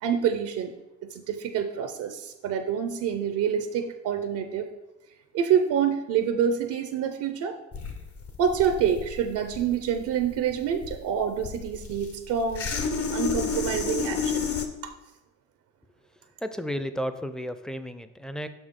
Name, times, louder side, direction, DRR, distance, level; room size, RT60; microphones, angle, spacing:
voice 1, 0.0-0.7 1.0-4.7 5.3-7.6 8.4-12.7 13.1-14.5 14.8-14.9, right 8 dB, 90° right, 7 dB, 0.6 m, -27 dB
sound 1, 7.7-14.7, left 5 dB, 50° left, 0.8 m, -31 dB
voice 2, 16.4-18.5, equal, ahead, 10 dB, 0.4 m, -33 dB
6.3 x 5.3 x 3.6 m, 0.98 s
cardioid pair, 90°, 30 cm